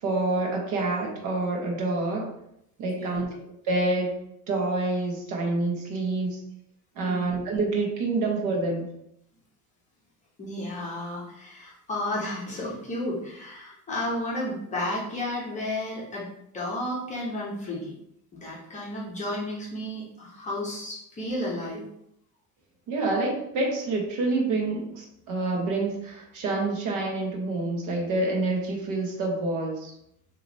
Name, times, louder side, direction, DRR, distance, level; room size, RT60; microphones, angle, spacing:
voice 1, 0.0-2.3 2.8-4.1 4.5-6.4 6.9-8.8 22.9-29.9, right 2 dB, 55° right, 0 dB, 1.3 m, -27 dB
voice 2, 10.4-16.3 16.5-17.9 18.3-21.9, left 1 dB, 20° left, -5 dB, 0.9 m, -32 dB
6.4 x 3.0 x 2.7 m, 0.76 s
cardioid pair, 170°, 36 cm